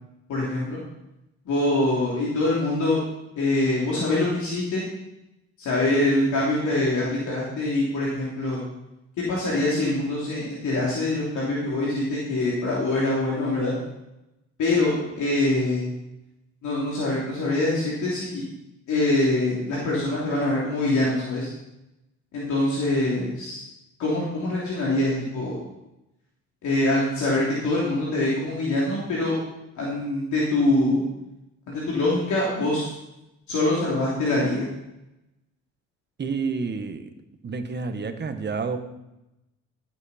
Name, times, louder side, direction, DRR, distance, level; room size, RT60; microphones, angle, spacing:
voice 1, 0.3-0.8 1.4-3.0 3.4-4.8 5.6-8.6 9.2-13.7 14.6-15.8 16.6-18.4 18.9-21.5 22.3-23.6 24.0-25.6 26.6-29.4 29.8-31.0 31.7-32.9 33.5-34.7, left 2 dB, 75° left, -6 dB, 3.0 m, -24 dB
voice 2, 36.2-37.1 37.4-38.8, right 4 dB, 35° right, 7 dB, 1.2 m, -29 dB
13.0 x 8.0 x 4.2 m, 0.91 s
cardioid pair, 90°, 30 cm